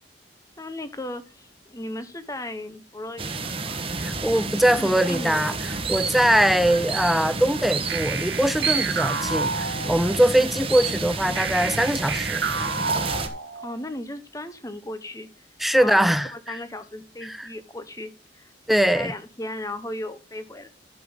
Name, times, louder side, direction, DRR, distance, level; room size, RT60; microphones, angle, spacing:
voice 1, 0.6-3.9 4.7-5.6 13.5-15.5 15.8-18.5 18.9-20.7, left 1 dB, 20° left, 1.1 m, -36 dB
sound 1, 3.2-13.3, right 4 dB, 30° right, 1.3 m, -30 dB
voice 2, 4.0-12.4 15.6-16.6 17.2-17.5 18.7-19.1, right 1 dB, ahead, 0.6 m, -22 dB
sound 2, 7.9-10.4 11.4-13.9, right 4 dB, 90° right, 1.6 m, -30 dB
11.5 x 6.9 x 3.9 m
head